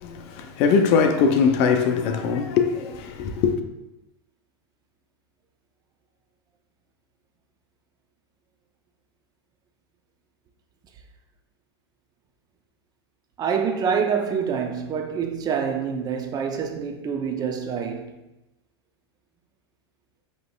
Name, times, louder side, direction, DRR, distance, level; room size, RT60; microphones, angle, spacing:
voice 1, 0.0-3.5, left 5 dB, 45° left, 0.5 m, -21 dB
voice 2, 13.4-18.1, right 6 dB, 30° right, 0.5 m, -26 dB
7.5 x 3.0 x 2.3 m
hypercardioid pair, 95°, 14 cm